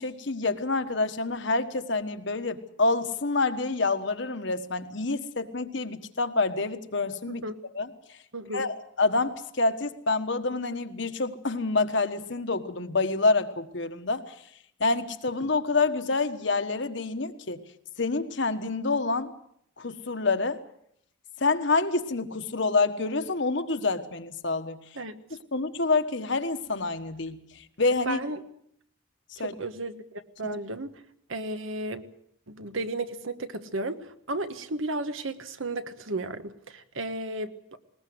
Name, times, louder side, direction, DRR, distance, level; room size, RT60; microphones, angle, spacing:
voice 1, 0.0-7.4 7.7-7.9 8.5-14.3 14.8-17.6 18.0-19.3 19.8-20.6 21.4-24.8 25.5-28.2 29.4-29.5, left 3 dB, 60° left, 8 dB, 1.4 m, -27 dB
voice 2, 8.3-8.7 24.9-25.2 28.0-28.4 29.4-30.0 30.4-30.9 31.3-32.0 32.5-37.8, right 2 dB, 75° right, 10 dB, 1.4 m, -33 dB
20.0 x 20.0 x 7.8 m, 0.70 s
head